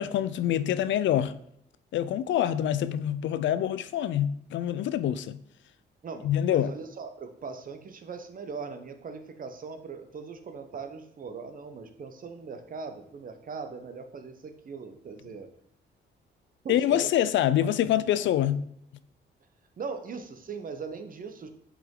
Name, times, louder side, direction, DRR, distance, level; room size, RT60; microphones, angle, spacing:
voice 1, 0.0-1.3 1.9-5.4 6.2-6.7 16.7-18.6, left 11 dB, 70° left, 0.5 m, -26 dB
voice 2, 6.0-15.5 16.6-17.1 17.6-17.7 19.8-21.5, right 5 dB, 45° right, 1.0 m, -40 dB
7.7 x 5.0 x 3.8 m
cardioid pair, 90°, 20 cm